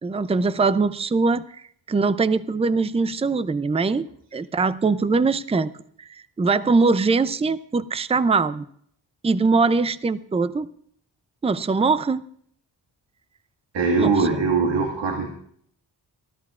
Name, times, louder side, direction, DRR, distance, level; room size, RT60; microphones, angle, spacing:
voice 1, 0.0-1.6 1.9-5.7 6.4-8.6 9.2-10.7 11.4-12.2 14.0-14.4, right 4 dB, 15° right, 14 dB, 0.5 m, -22 dB
voice 2, 13.7-15.3, right 4 dB, 90° right, 0 dB, 2.0 m, -21 dB
29.5 x 12.5 x 2.4 m, 0.62 s
wide cardioid pair, 100°, 42 cm